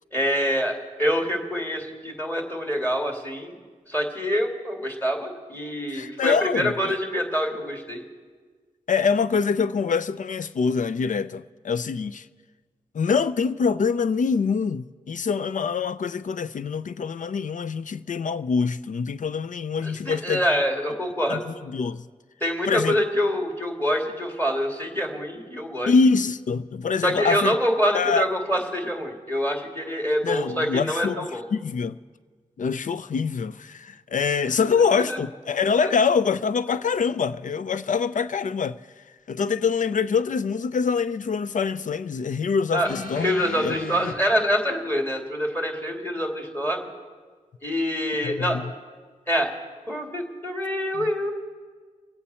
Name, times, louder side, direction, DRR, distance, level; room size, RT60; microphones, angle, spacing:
voice 1, 0.1-3.5 3.9-8.0 19.8-21.4 22.4-25.9 27.0-31.4 34.4-35.2 35.8-35.9 42.7-42.9 43.2-46.8 47.6-48.6 49.3-49.5 49.9-51.3, equal, 15° left, 2.7 m, -26 dB
voice 2, 5.9-6.9 8.9-12.2 12.9-20.6 21.3-22.0 22.7-23.0 25.9-27.5 27.9-28.3 30.2-31.2 31.5-32.0 32.6-38.8 39.3-43.3 43.6-43.7 48.2-48.7, left 5 dB, 60° left, 0.5 m, -25 dB
sound 1, 42.8-44.1 45.1-45.2, left 4 dB, 80° left, 0.9 m, -34 dB
24.0 x 8.3 x 4.3 m
cardioid pair, 45°, 15 cm